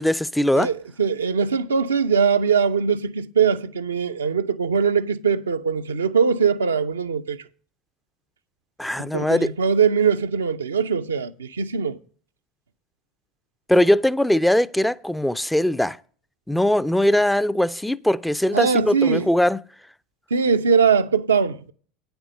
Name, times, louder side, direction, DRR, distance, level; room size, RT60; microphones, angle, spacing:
voice 1, 0.0-0.7 8.8-9.5 13.7-16.0 16.5-19.6, left 1 dB, 5° left, 0.4 m, -20 dB
voice 2, 0.5-7.4 9.0-12.0 18.5-19.3 20.3-21.7, right 6 dB, 80° right, 0.5 m, -21 dB
9.2 x 8.0 x 5.0 m
figure-of-eight pair, 75°, 0 cm